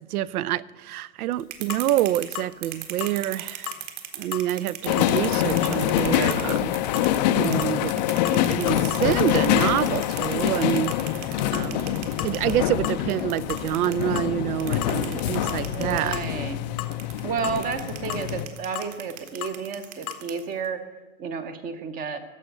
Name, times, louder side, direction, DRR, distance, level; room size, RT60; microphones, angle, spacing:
voice 1, 0.0-3.7 4.2-6.7 7.3-11.2 11.5-12.0 12.2-16.2, right 13 dB, 90° right, 0.6 m, -27 dB
sound 1, 1.3-7.2 7.4-14.0 14.6-16.3 16.9-20.7, right 13 dB, 55° right, 2.0 m, -37 dB
sound 2, 1.7-1.9 2.4-2.5 3.0-3.2 3.7-3.8 4.3-4.5 5.0-5.2 5.6-5.8 6.3-6.5 6.9-7.1 7.6-7.8 8.2-8.6 8.9-9.1 9.6-9.7 10.2-10.4 10.9-11.1 11.5-11.7 12.2-12.4 12.8-13.0 13.5-13.7 14.2-14.3 14.8-15.0 15.5-15.7 16.1-16.3 16.8-17.0 17.4-17.6 18.1-18.3 18.8-18.9 19.4-19.6 20.1-20.3, left 13 dB, 90° left, 1.1 m, -35 dB
sound 3, 4.8-18.5, left 12 dB, 35° left, 0.4 m, -25 dB
voice 2, 15.7-16.8 17.2-20.8 21.2-22.2, right 5 dB, 20° right, 0.6 m, -31 dB
15.0 x 5.6 x 9.0 m
supercardioid pair, 155°, 43 cm